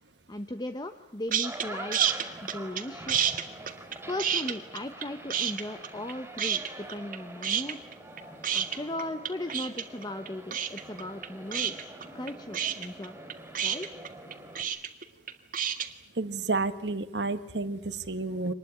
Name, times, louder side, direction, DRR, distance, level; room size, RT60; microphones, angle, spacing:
voice 1, 0.3-3.3 4.1-7.8 8.5-13.2 13.6-13.9, left 1 dB, 25° left, 7 dB, 0.9 m, -37 dB
sound 1, 1.3-14.6, right 1 dB, 10° right, 3.5 m, -45 dB
sound 2, 1.3-1.7 1.9-2.8 3.1-5.1 5.3-6.1 6.4-7.2 7.4-15.9, right 9 dB, 50° right, 1.8 m, -29 dB
voice 2, 16.1-18.5, right 3 dB, 75° right, 11 dB, 1.5 m, -30 dB
25.0 x 20.0 x 9.9 m, 0.89 s
head